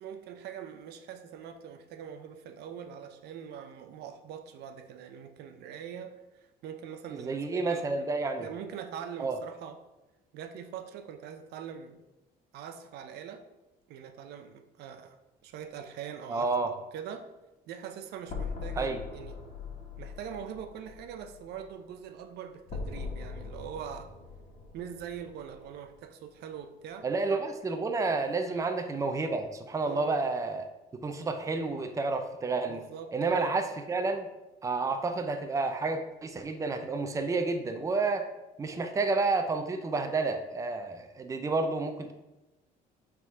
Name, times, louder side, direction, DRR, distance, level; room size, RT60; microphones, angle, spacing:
voice 1, 0.0-7.9 8.4-9.8 10.3-12.0 12.5-13.4 13.9-15.2 15.4-17.3 17.7-19.4 20.0-24.1 24.7-27.1 28.5-28.7 29.8-30.1 32.7-33.5, right 8 dB, 80° right, 8 dB, 0.6 m, -43 dB
voice 2, 7.1-8.5 9.2-9.4 16.3-16.7 18.8-19.0 27.0-30.7 31.0-32.8 33.1-34.3 34.6-38.3 38.6-42.1, right 3 dB, 20° right, 6 dB, 0.6 m, -30 dB
sound 1, 18.3-26.3, left 4 dB, 45° left, 1.6 m, -42 dB
6.0 x 3.7 x 4.5 m, 1.0 s
cardioid pair, 110°, 17 cm